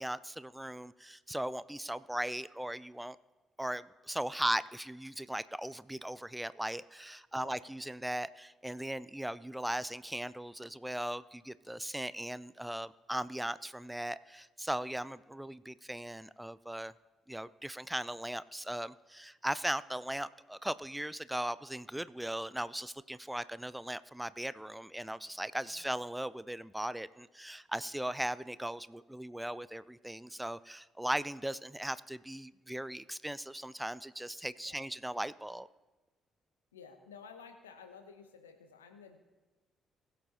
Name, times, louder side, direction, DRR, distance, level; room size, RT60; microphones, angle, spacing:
voice 1, 0.0-3.2 3.6-16.9 17.3-35.7, right 1 dB, 5° right, 17 dB, 0.4 m, -38 dB
voice 2, 7.3-7.7 25.6-25.9 34.6-34.8 36.7-39.2, left 6 dB, 85° left, 7 dB, 0.9 m, -53 dB
21.0 x 7.3 x 2.9 m, 1.2 s
figure-of-eight pair, 45°, 0 cm